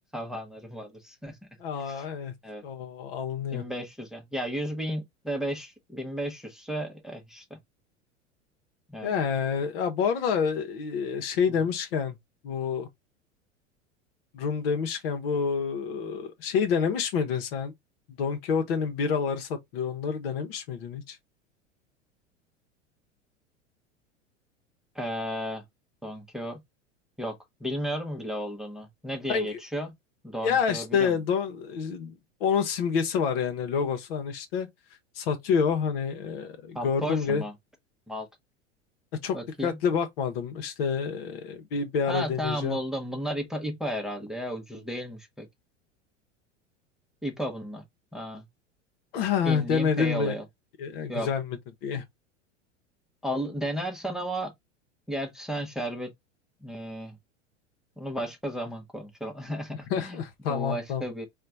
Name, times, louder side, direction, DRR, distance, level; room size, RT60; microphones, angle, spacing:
voice 1, 0.1-1.4 1.9-2.0 2.4-2.6 3.5-7.6 8.9-9.1 24.9-25.6 26.0-26.6 27.2-29.9 30.2-31.1 36.7-37.5 38.1-38.3 39.3-39.8 42.1-45.5 47.2-47.8 48.1-48.4 49.4-50.4 51.1-51.3 53.2-54.5 55.1-56.1 56.6-57.2 58.0-60.2 60.5-61.3, equal, ahead, 0.9 m, -33 dB
voice 2, 1.6-2.3 2.6-3.6 9.0-12.2 12.4-12.9 14.3-17.7 18.1-21.2 29.3-29.6 30.4-34.7 35.1-37.4 39.2-39.4 39.6-42.8 49.1-50.4 50.8-52.0 59.9-61.1, left 6 dB, 50° left, 1.1 m, -28 dB
4.3 x 2.5 x 3.9 m
figure-of-eight pair, 85°, 37 cm